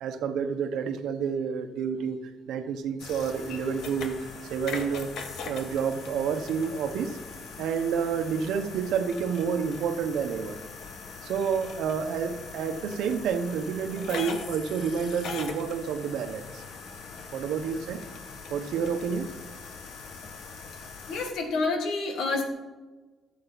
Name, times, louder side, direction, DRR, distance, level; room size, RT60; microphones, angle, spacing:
voice 1, 0.0-2.2 2.5-4.2 4.5-5.1 5.4-7.2 7.6-10.6 11.2-16.6 17.3-18.0 18.5-19.4, right 6 dB, 90° right, 8 dB, 1.0 m, -29 dB
sound 1, 3.0-21.3, left 5 dB, 70° left, 1.3 m, -41 dB
voice 2, 21.1-22.5, left 3 dB, 85° left, 3 dB, 1.8 m, -28 dB
13.5 x 7.5 x 4.1 m, 1.3 s
cardioid pair, 170°, 0 cm